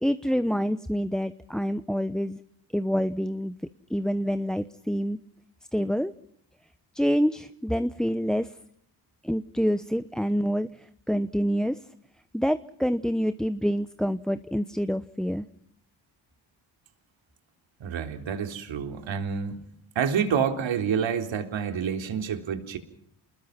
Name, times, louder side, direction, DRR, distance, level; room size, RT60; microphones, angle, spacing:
voice 1, 0.0-2.4 2.7-3.5 3.9-5.2 5.7-6.1 6.9-8.5 9.2-11.8 12.3-15.5, equal, ahead, 12 dB, 1.0 m, -27 dB
voice 2, 17.8-19.6 20.0-22.8, right 7 dB, 65° right, 5 dB, 3.7 m, -28 dB
28.5 x 21.0 x 5.9 m, 0.68 s
supercardioid pair, 70°, 49 cm